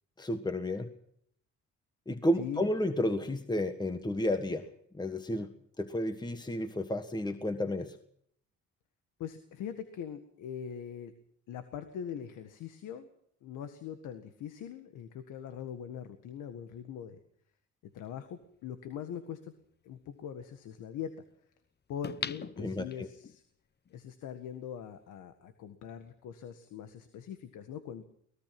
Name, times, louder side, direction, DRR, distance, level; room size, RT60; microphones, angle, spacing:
voice 1, 0.2-0.9 2.1-4.7 4.9-5.5 5.8-7.9 22.6-23.1, left 1 dB, 15° left, 8 dB, 1.6 m, -32 dB
voice 2, 9.2-11.1 11.5-13.1 13.4-17.2 17.9-19.5 19.8-21.1 21.9-23.4 23.9-28.0, left 8 dB, 85° left, 9 dB, 1.8 m, -42 dB
sound 1, 18.4-18.5 22.0-23.4 23.9-24.0, left 6 dB, 35° left, 0.9 m, -39 dB
23.5 x 19.0 x 6.0 m, 0.68 s
cardioid pair, 90°, 30 cm